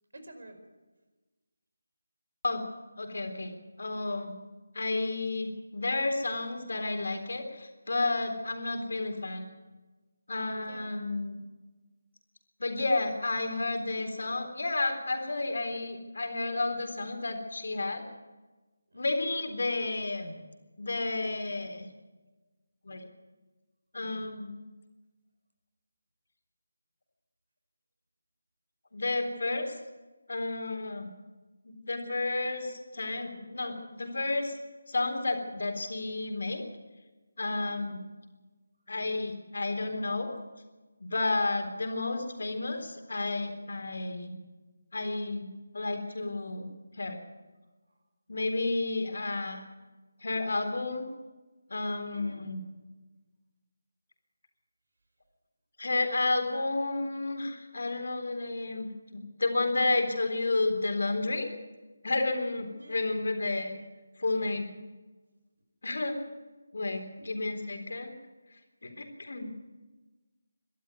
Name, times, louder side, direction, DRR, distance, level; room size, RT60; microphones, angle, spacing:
voice 1, 0.1-0.6 10.6-11.1 18.9-19.2 37.6-37.9 52.1-52.4 62.7-63.1 67.2-67.3, right 1 dB, 70° right, 7 dB, 4.7 m, -50 dB
voice 2, 3.0-4.3 4.7-9.5 10.3-11.4 12.6-18.0 18.9-20.4 20.8-21.9 22.8-23.1 23.9-24.5 28.9-29.7 30.3-31.1 31.6-34.6 34.9-36.6 37.4-38.1 38.9-40.3 41.0-44.4 44.9-45.5 45.7-47.2 48.3-49.6 50.2-51.1 51.7-52.6 55.8-61.5 62.0-63.7 64.2-64.7 65.8-66.2 66.7-68.1 68.8-69.5, left 2 dB, 65° left, 5 dB, 3.9 m, -31 dB
23.0 x 12.5 x 9.6 m, 1.2 s
figure-of-eight pair, 160°, 0 cm